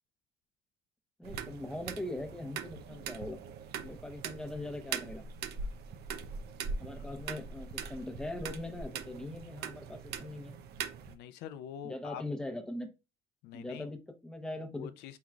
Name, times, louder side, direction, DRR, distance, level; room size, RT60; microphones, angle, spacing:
voice 1, 1.2-3.4 3.8-5.3 6.8-10.6 11.8-12.9 13.5-14.9, left 1 dB, 5° left, 0.9 m, -41 dB
sound 1, 1.2-11.1, right 6 dB, 75° right, 0.7 m, -41 dB
voice 2, 11.1-12.2 13.4-13.9 14.8-15.2, left 9 dB, 85° left, 0.4 m, -44 dB
4.5 x 3.8 x 2.4 m
cardioid pair, 110°, 17 cm